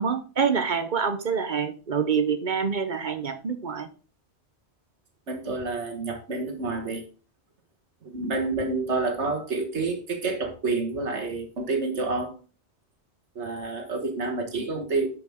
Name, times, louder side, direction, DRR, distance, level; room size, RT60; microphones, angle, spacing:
voice 1, 0.0-3.9, right 6 dB, 45° right, 9 dB, 0.8 m, -26 dB
voice 2, 5.3-7.0 8.0-12.3 13.4-15.1, right 3 dB, 75° right, 3 dB, 1.9 m, -28 dB
10.5 x 5.4 x 3.6 m, 0.37 s
omnidirectional pair, 1.2 m